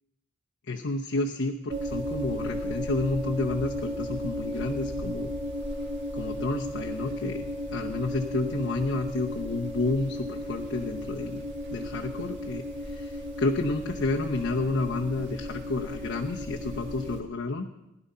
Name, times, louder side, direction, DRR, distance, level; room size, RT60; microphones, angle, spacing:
voice 1, 0.7-5.3 6.1-11.4 11.7-17.7, left 2 dB, 60° left, 0 dB, 0.9 m, -30 dB
sound 1, 1.7-17.2, left 1 dB, 55° right, 1.9 m, -34 dB
16.5 x 11.0 x 5.6 m, 0.92 s
head